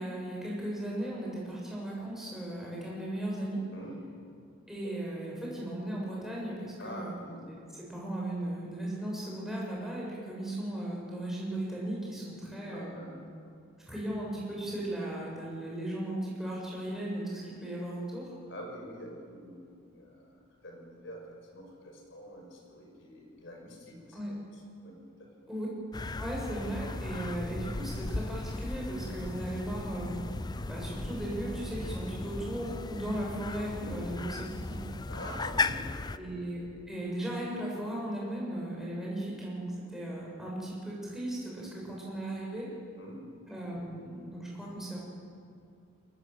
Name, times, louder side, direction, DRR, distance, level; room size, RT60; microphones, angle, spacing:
voice 1, 0.0-3.6 4.7-7.1 7.5-13.1 13.8-18.3 24.1-24.3 25.5-25.7 26.2-30.2 30.7-34.8 36.2-42.7 43.5-45.0, right 1 dB, ahead, -5 dB, 7.0 m, -37 dB
voice 2, 3.7-4.0 4.8-4.9 6.8-7.4 12.7-13.5 18.5-21.2 21.5-24.2 24.5-25.3 33.8-34.0 35.1-36.2 43.0-43.2, equal, 55° left, 1 dB, 6.0 m, -46 dB
sound 1, 25.9-36.2, left 3 dB, 20° left, 0.5 m, -36 dB
24.0 x 19.0 x 7.7 m, 2.3 s
head